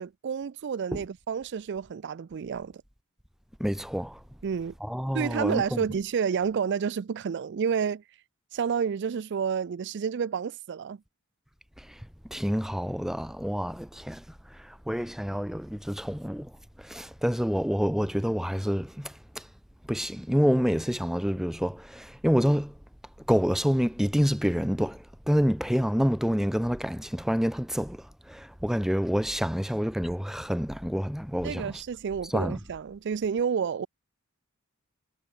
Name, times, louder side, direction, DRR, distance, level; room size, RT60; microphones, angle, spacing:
voice 1, 0.0-2.7 4.4-4.7 5.1-8.0 8.5-11.0 31.4-33.9, right 6 dB, 50° right, 0.4 m, -30 dB
voice 2, 3.6-4.2 4.8-5.8 11.8-11.9 12.3-14.2 14.6-16.5 16.8-19.4 19.9-22.7 23.3-31.7 32.3-32.6, equal, ahead, 1.0 m, -27 dB
head